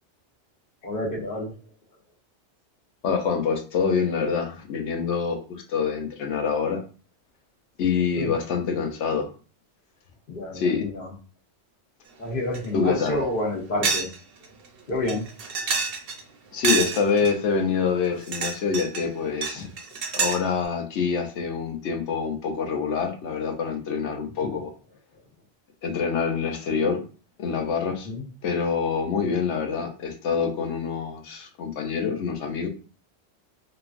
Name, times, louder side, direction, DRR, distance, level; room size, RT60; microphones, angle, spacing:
voice 1, 0.8-1.5 8.2-8.3 10.3-11.1 12.2-14.1 14.9-15.3 19.5-19.7 24.4-24.6 28.0-28.2, left 1 dB, 50° left, -2 dB, 1.1 m, -29 dB
voice 2, 3.0-6.8 7.8-9.3 10.5-10.9 12.7-13.2 16.5-19.7 20.1-24.7 25.8-27.0 27.4-28.1 28.4-32.7, left 5 dB, 80° left, 4 dB, 1.0 m, -26 dB
sound 1, 12.5-12.6 13.1-13.2 13.8-14.2 14.4-14.5 15.1-16.2 16.6-17.3 18.0-19.0 19.4-20.5, right 5 dB, 65° right, 0.7 m, -27 dB
2.9 x 2.4 x 2.4 m, 0.36 s
omnidirectional pair, 1.2 m